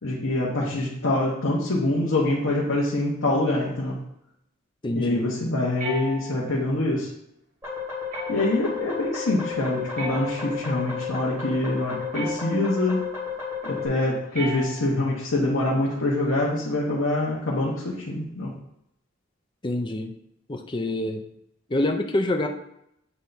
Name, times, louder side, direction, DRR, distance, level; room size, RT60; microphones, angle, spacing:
voice 1, 0.0-4.0 4.9-7.1 8.3-13.1 13.6-18.5, left 2 dB, 85° left, -5 dB, 1.1 m, -25 dB
voice 2, 4.8-5.3 19.6-20.1 20.5-21.2 21.7-22.5, left 1 dB, 25° left, 5 dB, 0.5 m, -26 dB
sound 1, 5.8-6.7 8.1-8.7 10.0-10.8 12.1-12.9 14.3-15.2, right 3 dB, 40° right, 1.3 m, -37 dB
sound 2, 7.6-13.9, left 6 dB, 15° right, 2.4 m, -33 dB
8.3 x 3.4 x 4.1 m, 0.79 s
head